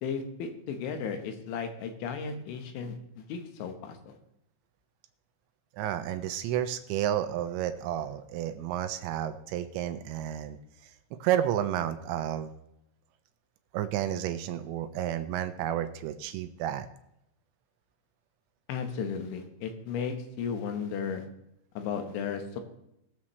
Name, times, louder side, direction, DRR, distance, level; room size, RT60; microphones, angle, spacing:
voice 1, 0.0-4.1 18.7-21.2 21.8-22.6, left 6 dB, 75° left, 6 dB, 3.4 m, -35 dB
voice 2, 5.7-10.6 10.8-10.9 11.2-12.5 13.7-16.9, right 11 dB, 85° right, 9 dB, 2.8 m, -31 dB
21.0 x 7.3 x 3.2 m, 0.80 s
omnidirectional pair, 5.5 m